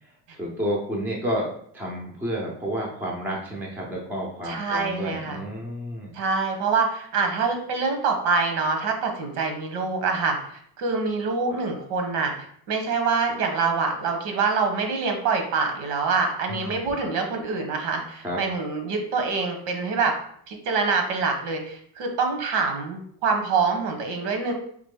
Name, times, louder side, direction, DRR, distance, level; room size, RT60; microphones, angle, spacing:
voice 1, 0.3-1.5 1.7-6.1 16.5-17.0 18.2-18.4, equal, 5° right, -2 dB, 0.5 m, -30 dB
voice 2, 4.5-5.4 6.1-10.4 10.8-20.2 20.5-24.5, right 4 dB, 85° right, 4 dB, 1.3 m, -25 dB
3.9 x 3.6 x 3.6 m, 0.64 s
cardioid pair, 165°, 49 cm